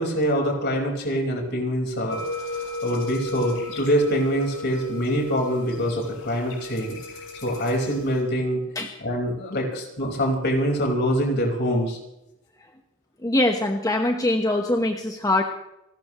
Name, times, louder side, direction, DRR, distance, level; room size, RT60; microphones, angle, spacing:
voice 1, 0.0-7.0 7.4-8.6 9.0-12.0, equal, 55° left, 0 dB, 4.9 m, -25 dB
sound 1, 2.1-8.2, left 2 dB, 85° left, 7.4 m, -35 dB
voice 2, 13.2-15.4, left 1 dB, 15° left, 3 dB, 1.2 m, -22 dB
30.0 x 13.5 x 3.1 m, 0.87 s
head